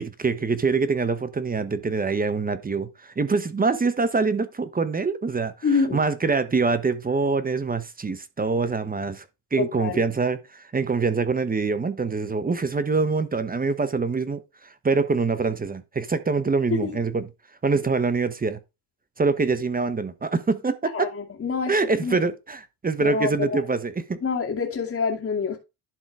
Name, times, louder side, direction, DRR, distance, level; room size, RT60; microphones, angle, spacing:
voice 1, 0.0-5.5 5.9-9.2 9.5-17.3 17.6-18.6 19.2-21.1 21.7-24.2, right 4 dB, 20° right, 1.0 m, -25 dB
voice 2, 5.6-6.0 9.6-10.0 16.8-16.9 20.9-21.7 22.0-22.3 23.0-23.6 24.2-25.6, left 5 dB, 30° left, 2.3 m, -26 dB
11.5 x 4.0 x 4.7 m
supercardioid pair, 90°, 46 cm